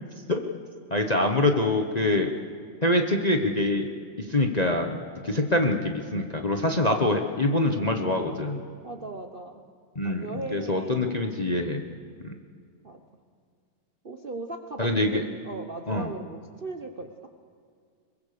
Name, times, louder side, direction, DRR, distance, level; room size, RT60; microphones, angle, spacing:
voice 1, 0.9-2.3 2.8-3.9 4.2-8.6 9.9-11.8 12.2-12.3 14.8-15.2 15.9-16.1, left 1 dB, 25° left, 4 dB, 0.9 m, -25 dB
voice 2, 2.2-2.5 8.8-9.7 10.0-11.4 12.8-13.0 14.0-17.3, right 3 dB, 40° right, 5 dB, 0.9 m, -39 dB
22.5 x 21.0 x 6.8 m, 2.1 s
omnidirectional pair, 2.0 m